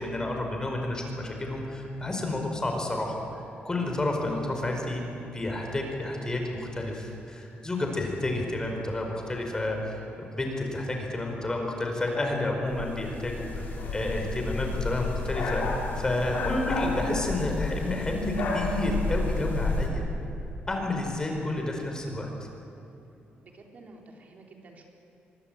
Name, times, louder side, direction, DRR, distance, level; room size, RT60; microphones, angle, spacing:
voice 1, 0.0-5.0 5.3-20.0 20.7-22.3, left 2 dB, 20° left, 2 dB, 4.7 m, -30 dB
sound 1, 12.7-19.9, left 3 dB, 65° left, 5.3 m, -31 dB
voice 2, 13.8-14.1 21.3-21.6 23.3-24.9, right 3 dB, 45° right, 1 dB, 4.0 m, -51 dB
23.5 x 22.5 x 8.9 m, 2.9 s
cardioid pair, 130°, 4 cm